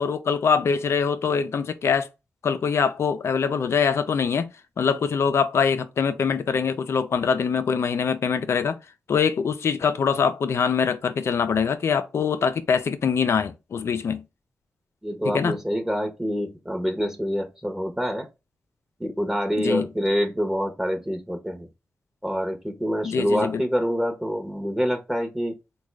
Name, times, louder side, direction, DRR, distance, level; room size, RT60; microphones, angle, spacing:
voice 1, 0.0-2.1 2.4-8.8 9.1-14.2 15.2-15.6 19.6-19.9 23.0-23.6, left 6 dB, 65° left, 0.5 m, -23 dB
voice 2, 15.0-18.3 19.0-21.7 22.2-25.5, equal, 10° right, 0.9 m, -26 dB
3.5 x 2.3 x 3.2 m
supercardioid pair, 45°, 5 cm